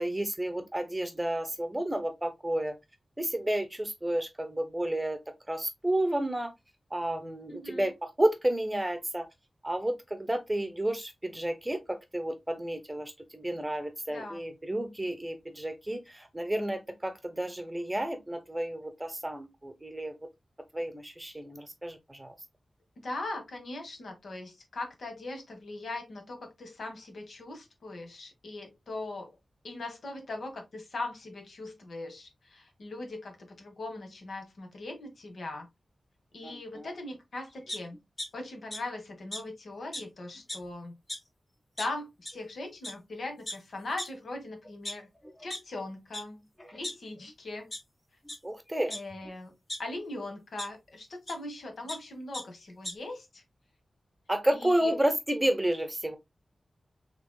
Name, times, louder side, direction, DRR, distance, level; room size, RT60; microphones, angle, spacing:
voice 1, 0.0-2.7 3.2-5.2 5.5-6.5 6.9-9.3 9.6-20.1 20.7-22.3 36.4-36.9 48.4-48.9 54.3-56.2, right 1 dB, 10° right, 0.9 m, -31 dB
voice 2, 7.5-7.9 14.1-14.4 23.0-29.4 29.6-35.7 36.3-38.0 38.3-40.9 41.8-45.1 45.4-46.4 46.7-47.7 48.9-49.5 49.8-53.4 54.5-55.0, left 2 dB, 75° left, 1.6 m, -40 dB
sound 1, 37.7-38.3 38.7-38.8 39.3-39.4 39.9-40.0 40.3-40.7 41.1-41.2 41.8-41.9 42.3-42.4 42.8-42.9 43.5-43.6 44.0-44.1 44.6-45.6 46.1-46.2 46.6-47.3 47.7-47.8 48.2-48.4 48.9-49.8 50.6-50.7 51.3-51.4 51.6-52.0 52.3-52.4 52.7-52.9, left 1 dB, 25° left, 1.4 m, -37 dB
5.9 x 3.5 x 2.3 m
wide cardioid pair, 130°, 0 cm